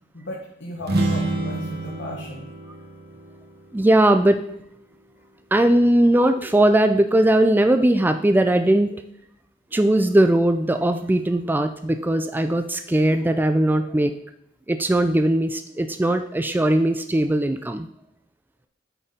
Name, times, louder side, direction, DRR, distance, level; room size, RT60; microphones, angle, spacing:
voice 1, 0.1-2.5, left 1 dB, 70° left, -4 dB, 1.5 m, -36 dB
sound 1, 0.8-4.5, right 2 dB, 55° right, 1.3 m, -28 dB
voice 2, 3.7-4.4 5.5-9.0 9.7-14.1 14.7-17.9, right 1 dB, 10° right, 8 dB, 0.3 m, -19 dB
8.7 x 4.4 x 5.1 m, 0.76 s
head